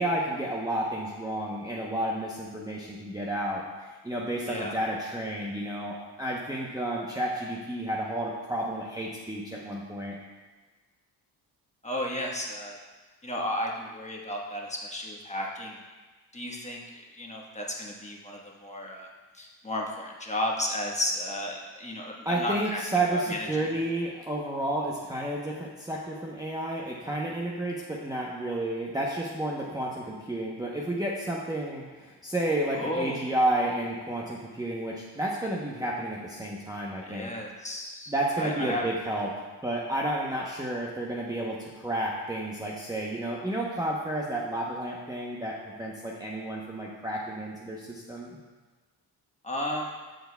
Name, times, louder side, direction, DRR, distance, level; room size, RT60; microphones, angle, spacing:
voice 1, 0.0-10.1 22.2-37.3 38.1-39.3 39.6-48.4, right 1 dB, 10° right, -4 dB, 0.8 m, -31 dB
voice 2, 11.8-12.8 13.2-15.8 16.3-19.1 19.3-22.8 23.1-23.8 32.7-33.4 37.1-38.8 49.4-49.9, left 1 dB, 15° left, -1 dB, 1.3 m, -33 dB
13.5 x 4.6 x 2.3 m, 1.3 s
cardioid pair, 80°, 40 cm